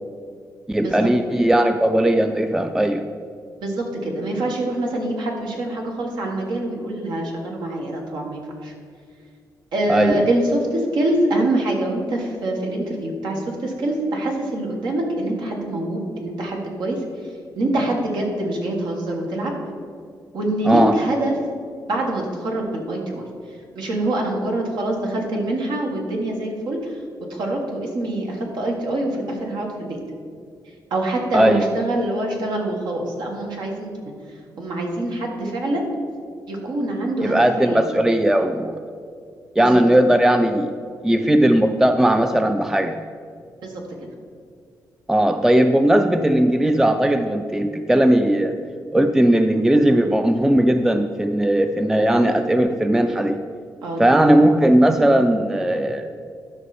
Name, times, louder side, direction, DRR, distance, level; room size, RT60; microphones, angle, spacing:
voice 1, 0.7-3.1 9.9-10.2 20.7-21.0 31.3-31.6 37.2-38.8 39.6-40.7 41.0-43.0 45.1-48.6 48.9-53.4 54.0-56.1, right 1 dB, 5° right, 7 dB, 0.4 m, -17 dB
voice 2, 3.6-8.7 9.7-17.0 17.6-19.5 20.3-21.3 21.9-23.2 23.8-26.9 27.3-30.0 30.9-33.9 34.6-35.8 36.5-37.8 39.6-39.7 43.6-43.7 53.8-54.3, right 1 dB, 80° right, 0 dB, 1.8 m, -25 dB
12.5 x 5.5 x 4.3 m, 2.2 s
cardioid pair, 85°, 7 cm